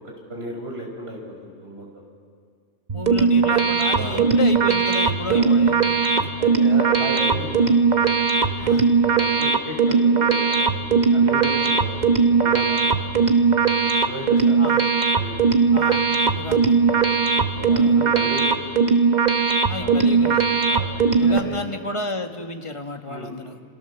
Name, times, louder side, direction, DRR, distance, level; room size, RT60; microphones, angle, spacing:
voice 1, 0.0-2.0 3.9-4.3 5.2-5.6 6.1-7.8 8.4-8.7 9.1-13.2 13.8-14.7 15.1-15.5 16.6-16.8 17.4-18.6 19.8-20.0 20.7-21.6 23.0-23.4, right 1 dB, 55° right, 0 dB, 5.5 m, -35 dB
voice 2, 2.9-6.3 8.6-8.8 14.6-14.8 15.7-16.0 16.3-16.8 17.7-18.0 19.7-20.5 21.2-23.6, left 2 dB, 25° left, 5 dB, 1.4 m, -31 dB
sound 1, 2.9-21.4, right 5 dB, 35° right, 1.3 m, -19 dB
29.0 x 26.0 x 7.0 m, 2.2 s
omnidirectional pair, 1.3 m